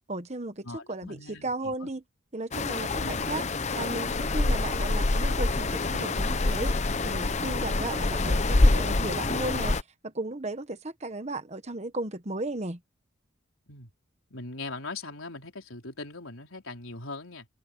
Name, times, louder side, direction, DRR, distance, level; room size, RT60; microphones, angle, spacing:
voice 1, 0.1-2.0 2.3-3.4 3.7-6.7 7.0-9.8 10.0-12.8, right 2 dB, 35° right, 1.3 m, -35 dB
voice 2, 0.6-1.9 3.0-3.2 13.7-13.9 14.3-17.5, left 3 dB, 85° left, 3.9 m, -40 dB
sound 1, 2.5-9.8, left 2 dB, 35° left, 0.8 m, -26 dB
head